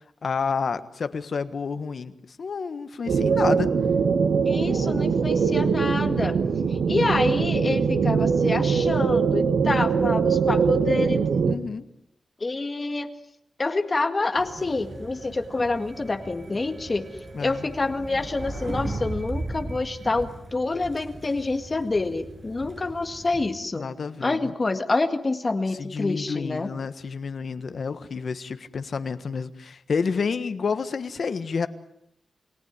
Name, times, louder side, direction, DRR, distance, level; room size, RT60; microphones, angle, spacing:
voice 1, 0.2-2.1 2.4-3.7 11.4-11.8 17.3-17.7 23.8-24.4 25.8-31.7, left 5 dB, 50° left, 11 dB, 1.4 m, -29 dB
sound 1, 3.1-11.6, right 6 dB, 85° right, 1.8 m, -22 dB
voice 2, 4.4-6.4 6.7-11.2 12.4-13.1 13.6-17.1 17.4-23.9 24.2-26.7, left 3 dB, 25° left, 8 dB, 1.9 m, -27 dB
sound 2, 14.4-23.5, right 2 dB, 30° right, 6.6 m, -37 dB
29.0 x 19.0 x 9.7 m, 0.77 s
wide cardioid pair, 175°, 0 cm